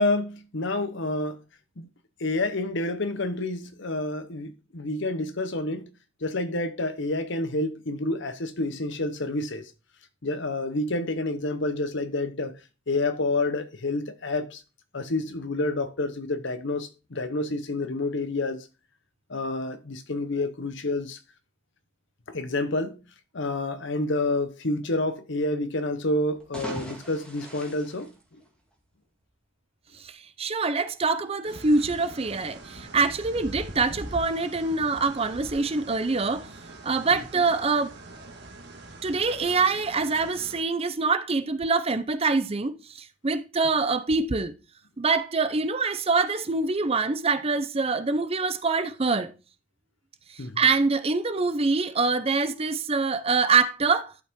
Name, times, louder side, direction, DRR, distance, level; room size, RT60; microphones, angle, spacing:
voice 1, 0.0-1.4 1.8-1.9 2.2-5.9 6.2-9.7 10.2-12.5 12.9-14.6 14.9-18.7 19.3-21.2 22.3-23.0 23.3-28.4 50.4-50.6, left 2 dB, 60° left, 0.9 m, -28 dB
sound 1, 26.3-28.9, right 1 dB, 5° left, 2.2 m, -41 dB
voice 2, 30.0-36.5 36.8-37.9 39.0-44.5 45.0-49.3 50.3-54.1, right 4 dB, 30° right, 0.6 m, -25 dB
sound 2, 31.4-40.6, right 1 dB, 55° right, 1.6 m, -43 dB
12.0 x 5.5 x 3.6 m
head